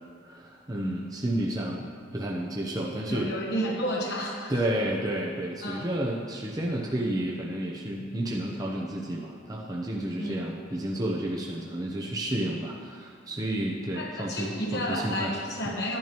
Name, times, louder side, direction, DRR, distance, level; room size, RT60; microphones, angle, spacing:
voice 1, 0.2-3.3 4.5-15.3 15.6-15.8, right 1 dB, 20° right, -3 dB, 0.8 m, -31 dB
voice 2, 3.1-4.5 5.6-5.8 10.2-10.4 13.9-16.0, equal, 60° left, -2 dB, 1.2 m, -31 dB
12.0 x 10.5 x 3.0 m, 2.1 s
head